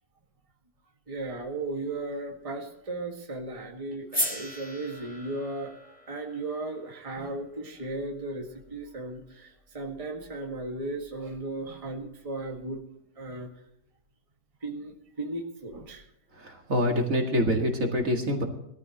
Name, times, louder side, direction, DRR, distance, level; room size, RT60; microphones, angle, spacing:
voice 1, 1.1-12.8 13.2-13.5 14.6-16.0, right 2 dB, 20° right, 1 dB, 1.9 m, -36 dB
sound 1, 4.1-8.3, equal, 5° left, 2.4 m, -37 dB
voice 2, 16.4-18.4, equal, 50° right, 2 dB, 2.4 m, -26 dB
21.0 x 14.0 x 3.0 m, 0.79 s
omnidirectional pair, 1.8 m